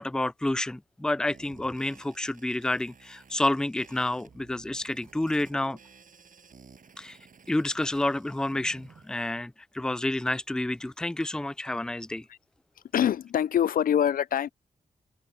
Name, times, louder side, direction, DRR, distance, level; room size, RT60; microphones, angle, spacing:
voice 1, 0.0-5.8 7.0-7.2 7.5-12.3, left 1 dB, 5° left, 0.4 m, -29 dB
sound 1, 1.3-9.3, right 6 dB, 60° right, 7.5 m, -54 dB
voice 2, 12.9-14.5, left 9 dB, 70° left, 0.4 m, -24 dB
open air
cardioid pair, 85°, 16 cm